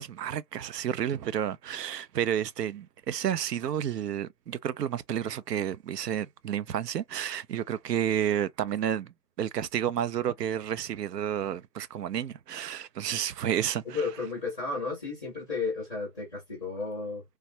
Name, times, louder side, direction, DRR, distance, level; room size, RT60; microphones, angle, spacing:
voice 1, 0.0-14.0, right 10 dB, 75° right, 0.6 m, -31 dB
voice 2, 13.8-17.2, left 4 dB, 5° right, 0.7 m, -33 dB
3.3 x 2.4 x 2.6 m
hypercardioid pair, 160°, 49 cm